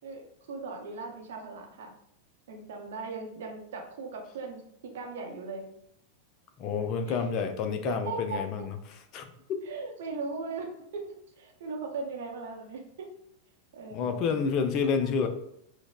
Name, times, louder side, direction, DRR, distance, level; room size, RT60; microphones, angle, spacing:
voice 1, 0.0-1.9 2.5-4.6 4.9-5.6 7.0-7.2 7.8-8.4 9.6-13.1 13.7-14.3, right 4 dB, 60° right, 1 dB, 0.6 m, -38 dB
voice 2, 6.6-8.7 9.1-9.3 13.9-15.3, left 5 dB, 40° left, 7 dB, 0.3 m, -29 dB
4.0 x 2.0 x 2.3 m, 0.75 s
figure-of-eight pair, 90°, 0 cm